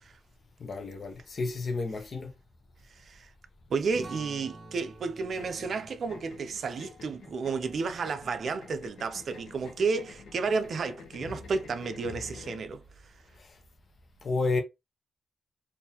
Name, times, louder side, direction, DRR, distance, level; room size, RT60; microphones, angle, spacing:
voice 1, 0.6-2.3 13.4-13.6 14.2-14.6, left 3 dB, 40° left, 0.7 m, -31 dB
voice 2, 3.0-3.3 3.7-12.8, right 4 dB, 50° right, 0.5 m, -32 dB
sound 1, 3.9-9.1, right 2 dB, 20° right, 1.2 m, -50 dB
sound 2, 5.4-12.7, left 5 dB, 75° left, 0.8 m, -50 dB
3.7 x 2.6 x 2.8 m
wide cardioid pair, 150°, 0 cm